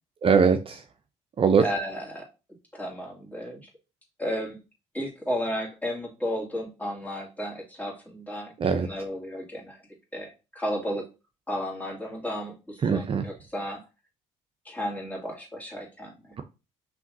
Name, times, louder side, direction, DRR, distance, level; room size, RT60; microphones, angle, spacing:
voice 1, 0.2-0.8 1.4-1.6 8.6-8.9 12.8-13.2, right 6 dB, 40° right, 7 dB, 0.5 m, -21 dB
voice 2, 1.6-2.3 2.7-3.7 4.2-4.6 4.9-9.8 10.1-11.1 11.5-13.8 14.6-16.3, equal, 10° left, -1 dB, 2.2 m, -33 dB
5.6 x 3.0 x 2.6 m, 0.29 s
supercardioid pair, 70°, 15 cm